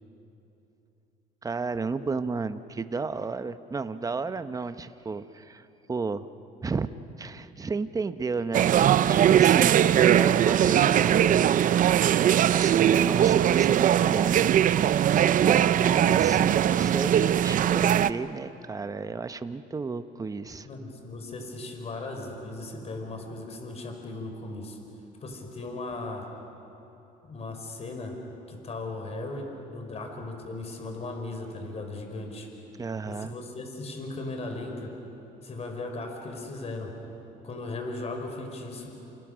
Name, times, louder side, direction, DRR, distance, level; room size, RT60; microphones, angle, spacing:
voice 1, 1.4-6.3 6.6-6.9 7.2-11.6 12.5-14.5 15.1-20.7 32.8-33.3, right 4 dB, 20° right, 11 dB, 0.9 m, -32 dB
sound 1, 8.5-18.1, right 10 dB, 50° right, 0.6 m, -20 dB
voice 2, 20.6-24.8 25.2-26.3 27.3-28.2 28.5-32.5 33.0-35.0 35.4-36.9 37.4-39.0, left 2 dB, 40° left, 4 dB, 4.3 m, -37 dB
29.5 x 28.0 x 6.3 m, 3.0 s
cardioid pair, 110°, 17 cm